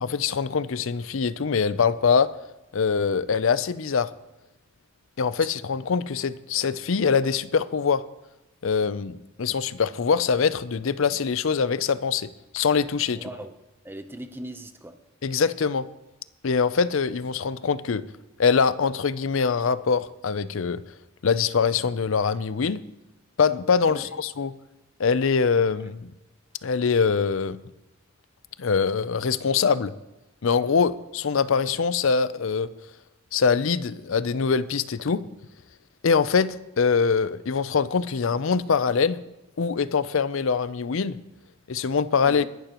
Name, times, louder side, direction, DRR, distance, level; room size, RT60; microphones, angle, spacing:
voice 1, 0.0-2.4 2.7-4.1 5.2-8.0 8.6-12.3 12.5-13.2 15.2-15.9 16.4-18.0 18.4-20.8 21.2-22.8 23.4-24.5 25.0-26.1 26.6-27.6 28.6-29.9 30.4-32.7 33.3-35.2 36.0-39.2 39.6-41.2 41.7-42.4, left 5 dB, 65° left, 16 dB, 0.5 m, -23 dB
voice 2, 13.1-13.5 13.8-15.0 23.9-24.1 42.3-42.5, right 1 dB, 10° right, 8 dB, 0.8 m, -39 dB
21.0 x 11.5 x 3.0 m, 0.98 s
head